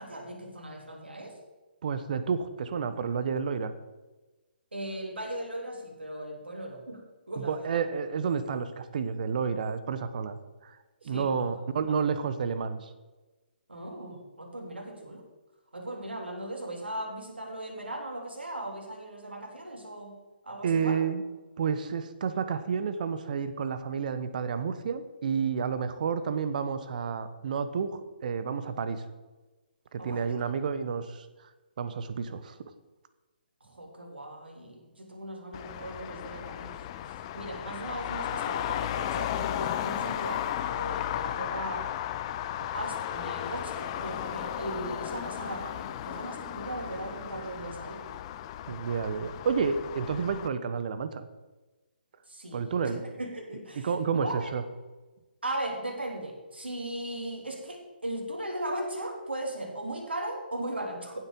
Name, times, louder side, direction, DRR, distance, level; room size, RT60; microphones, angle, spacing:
voice 1, 0.0-1.4 4.7-7.8 11.0-11.5 13.7-15.2 15.7-20.1 20.4-21.0 30.0-30.4 33.6-36.7 37.3-41.9 42.7-48.0 52.3-54.5 55.4-61.2, right 1 dB, 80° right, 1 dB, 3.5 m, -38 dB
voice 2, 1.8-3.7 7.4-10.8 11.0-12.9 20.6-21.2 21.6-29.0 29.9-31.3 31.8-32.6 48.7-51.3 52.5-53.0 53.8-54.6, right 6 dB, 50° right, 12 dB, 1.2 m, -30 dB
Traffic noise roadway noise, 35.5-50.5, left 11 dB, 30° left, 0.7 m, -35 dB
15.5 x 8.0 x 5.4 m, 1.2 s
figure-of-eight pair, 135°, 6 cm